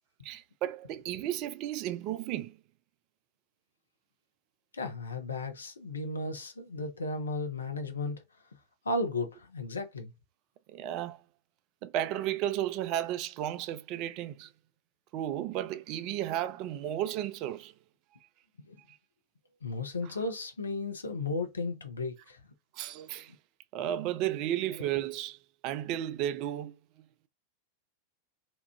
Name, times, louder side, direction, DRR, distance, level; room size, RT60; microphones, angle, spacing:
voice 1, 0.2-2.6 10.7-11.2 11.8-14.5 15.1-17.7 18.9-19.0 20.0-20.1 22.7-23.3 23.7-26.7, right 12 dB, 40° right, 0.4 m, -33 dB
voice 2, 4.7-8.2 8.8-10.1 18.7-18.8 19.6-22.4, left 2 dB, 75° left, 0.7 m, -34 dB
2.9 x 2.4 x 3.4 m
figure-of-eight pair, 90°, 0 cm